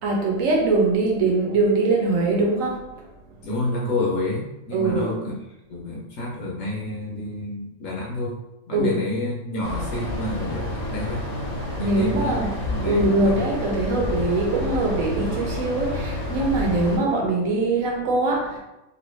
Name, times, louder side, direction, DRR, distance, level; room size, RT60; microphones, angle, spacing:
voice 1, 0.0-3.0 4.7-5.1 8.7-9.0 11.8-12.6 12.8-18.6, right 2 dB, 65° right, -1 dB, 1.1 m, -22 dB
voice 2, 3.4-5.3 5.7-8.4 8.7-11.2 11.8-13.4, left 2 dB, 65° left, -3 dB, 1.0 m, -29 dB
sound 1, 9.6-17.0, left 1 dB, 35° left, 0.7 m, -29 dB
3.1 x 2.6 x 3.1 m, 0.93 s
omnidirectional pair, 1.6 m